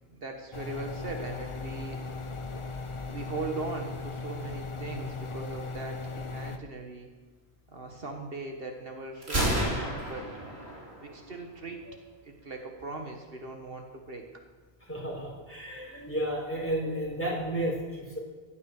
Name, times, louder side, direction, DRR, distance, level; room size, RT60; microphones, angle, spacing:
voice 1, 0.1-2.0 3.1-7.1 7.7-10.3 11.0-11.8 12.2-14.3, right 3 dB, 65° right, 3 dB, 1.7 m, -39 dB
sound 1, 0.5-6.6, left 3 dB, 30° left, 0.8 m, -38 dB
Gunshot gunfire, 9.2-11.2, right 1 dB, 90° right, 3.5 m, -30 dB
voice 2, 14.9-18.2, right 1 dB, 10° left, -3 dB, 4.0 m, -32 dB
16.5 x 9.5 x 6.6 m, 1.3 s
omnidirectional pair, 1.1 m